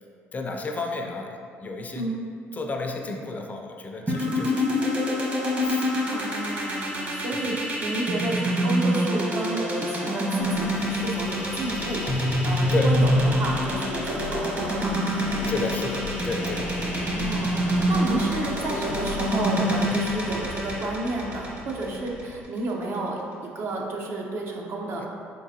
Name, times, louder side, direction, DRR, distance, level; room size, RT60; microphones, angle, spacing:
voice 1, 0.3-2.1 2.5-4.9 5.2-5.9 7.3-7.6 12.7-12.9 15.5-16.7 25.0-25.1, left 3 dB, 30° left, 2 dB, 0.4 m, -32 dB
sound 1, 4.1-22.2, equal, 35° right, 1.1 m, -25 dB
voice 2, 6.1-15.2 17.0-23.2 23.5-25.1, right 2 dB, 50° right, -1 dB, 0.7 m, -31 dB
Subway metro underground, 10.4-22.4, left 4 dB, 85° left, 0.5 m, -36 dB
4.1 x 3.7 x 2.7 m, 2.3 s
supercardioid pair, 80°, 5 cm